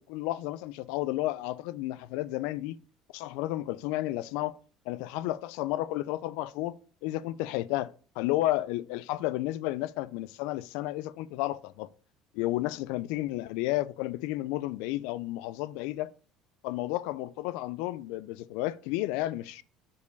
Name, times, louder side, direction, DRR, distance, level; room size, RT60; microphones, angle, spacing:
voice 1, 0.0-2.8 3.1-4.6 4.9-6.7 7.0-7.9 8.2-11.9 12.3-16.1 16.6-19.6, left 16 dB, 80° left, 0.4 m, -32 dB
4.8 x 4.8 x 5.2 m
supercardioid pair, 95°, 0 cm